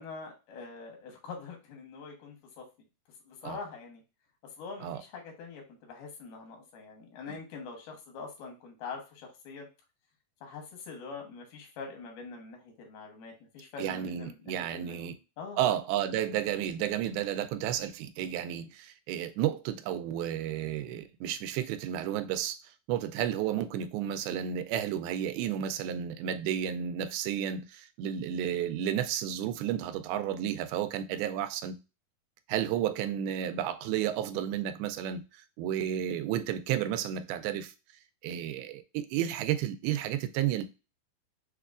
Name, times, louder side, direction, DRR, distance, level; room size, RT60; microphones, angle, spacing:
voice 1, 0.0-2.6 3.3-4.0 4.6-9.7 10.4-15.6, left 4 dB, 90° left, 3.2 m, -44 dB
voice 2, 13.8-15.1 15.6-22.6 22.9-31.8 32.5-37.7 38.2-40.6, right 10 dB, 85° right, 2.4 m, -32 dB
6.7 x 2.3 x 2.4 m
omnidirectional pair, 4.3 m